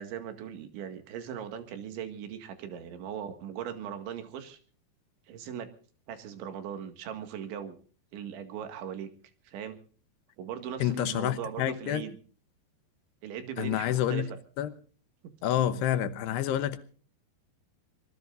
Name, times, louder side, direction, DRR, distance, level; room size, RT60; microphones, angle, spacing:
voice 1, 0.0-4.6 5.3-5.7 6.1-7.8 8.1-9.1 9.5-9.8 10.4-12.2 13.2-14.3, right 9 dB, 85° right, 4.3 m, -39 dB
voice 2, 10.8-12.0 13.6-14.3 14.6-14.7 15.4-16.8, left 11 dB, 75° left, 2.9 m, -28 dB
25.0 x 20.5 x 2.6 m
omnidirectional pair, 5.2 m